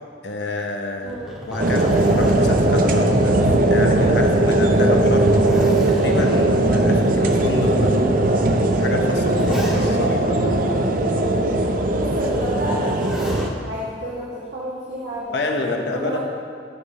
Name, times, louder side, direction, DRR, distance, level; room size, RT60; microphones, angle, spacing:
voice 1, 0.2-1.2 1.5-10.6 15.3-16.2, left 2 dB, 70° left, 2 dB, 1.2 m, -28 dB
Zipper (clothing), 1.0-3.9 4.3-4.4 5.0-6.8 7.6-7.7 8.6-10.2 12.6-13.5 14.9-15.4, equal, 5° right, 2.1 m, -33 dB
voice 2, 1.0-1.3 11.9-15.4 15.7-16.2, equal, 70° right, -7 dB, 2.0 m, -31 dB
sound 1, 1.6-13.5, right 1 dB, 50° right, 0.7 m, -18 dB
15.0 x 5.1 x 5.7 m, 2.1 s
head